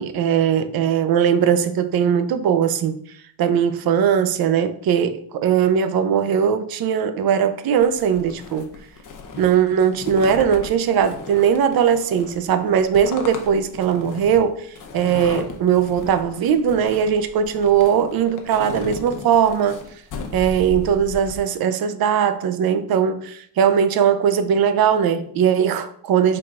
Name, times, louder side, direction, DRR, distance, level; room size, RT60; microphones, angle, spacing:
voice 1, 0.0-3.0 3.4-8.7 9.4-14.7 14.9-19.8 20.3-26.4, right 8 dB, 55° right, 0.5 m, -19 dB
sound 1, 7.8-21.4, left 4 dB, 45° left, 0.8 m, -36 dB
4.7 x 3.7 x 2.4 m
cardioid pair, 90°, 44 cm